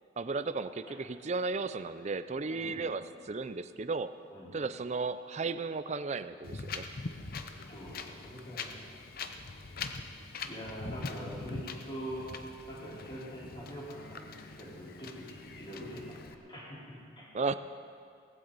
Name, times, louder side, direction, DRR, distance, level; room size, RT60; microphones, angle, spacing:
voice 1, 0.2-4.1 4.5-6.9 17.3-17.5, right 4 dB, 35° right, 13 dB, 0.4 m, -34 dB
voice 2, 2.5-3.0 4.3-4.5 7.7-8.9 9.3-9.5 9.9-10.1 10.4-12.4 12.7-17.3, equal, 25° left, -7 dB, 4.2 m, -44 dB
Wind, 6.4-16.3, left 4 dB, 50° left, 0.8 m, -43 dB
18.0 x 15.5 x 4.1 m, 2.3 s
head